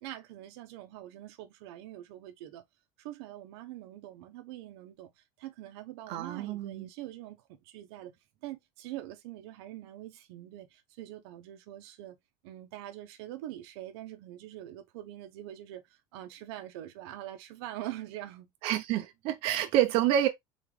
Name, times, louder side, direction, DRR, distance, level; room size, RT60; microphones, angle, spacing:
voice 1, 0.0-2.6 3.0-8.2 8.4-12.2 12.4-18.5, right 14 dB, 90° right, 1.0 m, -44 dB
voice 2, 6.1-6.9 18.6-20.3, right 11 dB, 50° right, 0.8 m, -28 dB
4.1 x 4.0 x 3.2 m
cardioid pair, 175°, 13 cm